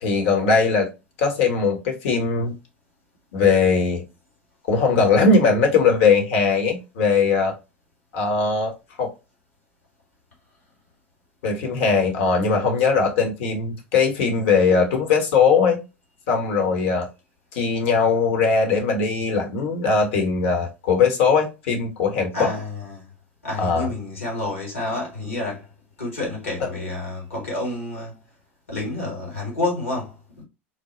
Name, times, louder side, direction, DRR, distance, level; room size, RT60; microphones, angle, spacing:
voice 1, 0.0-0.9 1.2-2.5 3.3-4.0 4.7-7.5 8.1-8.7 9.0-9.1 11.4-15.8 16.3-17.1 17.5-22.5 23.6-23.9, left 5 dB, 65° left, 1.2 m, -20 dB
voice 2, 22.3-23.1 23.4-25.7 26.0-28.2 28.7-30.4, left 2 dB, 85° left, 1.9 m, -29 dB
4.5 x 2.2 x 2.9 m
hypercardioid pair, 85°, 7 cm